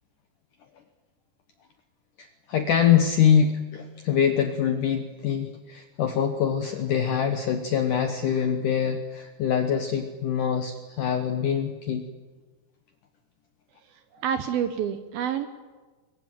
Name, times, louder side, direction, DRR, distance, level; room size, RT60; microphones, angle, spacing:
voice 1, 2.2-12.1, left 8 dB, 70° left, 6 dB, 2.0 m, -24 dB
voice 2, 14.1-15.5, right 8 dB, 70° right, 9 dB, 2.4 m, -28 dB
23.0 x 23.0 x 9.0 m, 1.3 s
omnidirectional pair, 5.2 m